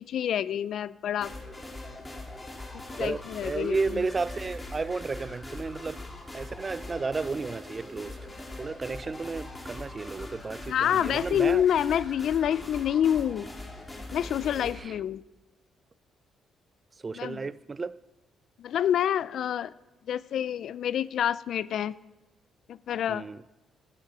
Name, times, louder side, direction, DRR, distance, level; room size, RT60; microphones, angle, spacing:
voice 1, 0.0-1.3 2.9-4.1 10.7-13.5 14.1-15.2 17.1-17.5 18.6-19.7 20.1-22.0 22.7-23.3, left 9 dB, 70° left, 0.4 m, -27 dB
sound 1, 1.2-14.8, left 2 dB, 20° left, 2.3 m, -41 dB
voice 2, 3.0-6.0 6.3-8.2 8.6-11.6 17.0-18.0 23.1-23.4, right 4 dB, 30° right, 0.3 m, -33 dB
12.0 x 9.1 x 4.8 m
cardioid pair, 90°, 0 cm